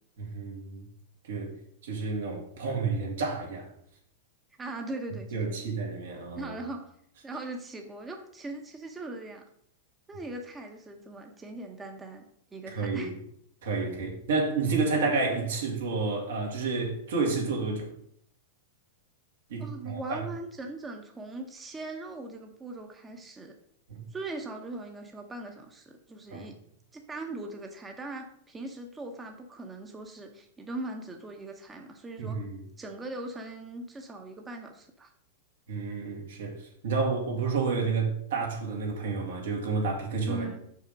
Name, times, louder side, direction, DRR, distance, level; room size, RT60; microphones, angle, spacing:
voice 1, 0.2-0.9 1.2-1.5 1.8-3.7 5.3-6.6 12.7-13.1 13.6-17.9 19.5-20.2 23.9-24.0 26.3-26.5 32.2-32.6 35.7-40.5, right 4 dB, 80° right, 0 dB, 2.4 m, -30 dB
voice 2, 4.6-5.7 6.4-6.9 7.2-9.4 10.1-12.2 12.5-13.1 19.6-23.5 24.1-26.5 26.9-32.4 32.8-35.1 40.2-40.6, right 2 dB, 15° right, 3 dB, 0.9 m, -40 dB
5.8 x 5.6 x 5.2 m, 0.68 s
hypercardioid pair, 135°, 0 cm